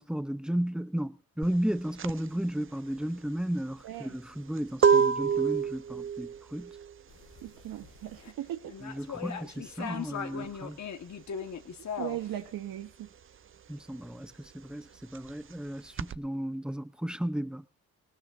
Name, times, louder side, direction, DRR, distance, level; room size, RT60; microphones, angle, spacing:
voice 1, 0.0-6.7 8.8-10.8 13.7-17.7, right 1 dB, ahead, 0.8 m, -34 dB
sound 1, 1.4-11.7 11.9-16.1, right 6 dB, 35° right, 0.6 m, -30 dB
sound 2, 7.1-8.3 8.7-12.3, left 7 dB, 55° left, 1.7 m, -39 dB
voice 2, 7.4-8.7 12.0-13.1, right 12 dB, 80° right, 1.5 m, -38 dB
19.5 x 18.5 x 2.7 m
cardioid pair, 70°, 34 cm